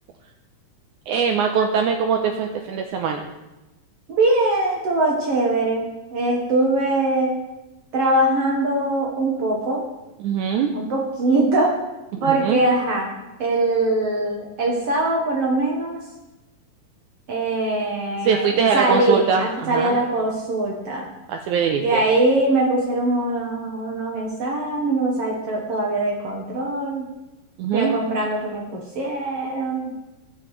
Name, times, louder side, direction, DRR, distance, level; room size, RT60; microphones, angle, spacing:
voice 1, 1.1-3.3 10.2-10.7 12.1-12.7 18.2-20.0 21.3-22.0 27.6-28.0, right 6 dB, 80° right, 4 dB, 1.8 m, -22 dB
voice 2, 4.1-7.4 7.9-9.8 10.7-11.7 12.2-13.1 13.4-16.0 17.3-21.1 21.8-27.0 27.7-29.9, right 2 dB, 60° right, -2 dB, 1.7 m, -22 dB
18.5 x 6.8 x 3.1 m, 1.0 s
omnidirectional pair, 4.1 m